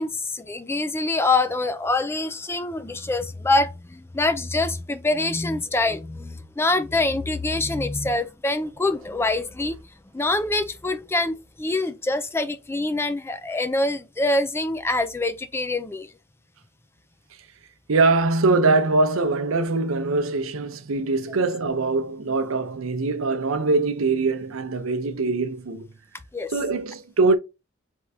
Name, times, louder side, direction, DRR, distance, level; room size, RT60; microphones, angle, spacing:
voice 1, 0.0-9.8 10.1-16.1 26.3-26.5, left 2 dB, 10° left, 0.4 m, -25 dB
voice 2, 17.9-25.9 26.5-27.4, right 3 dB, 75° right, 0.6 m, -22 dB
4.5 x 3.5 x 2.7 m
head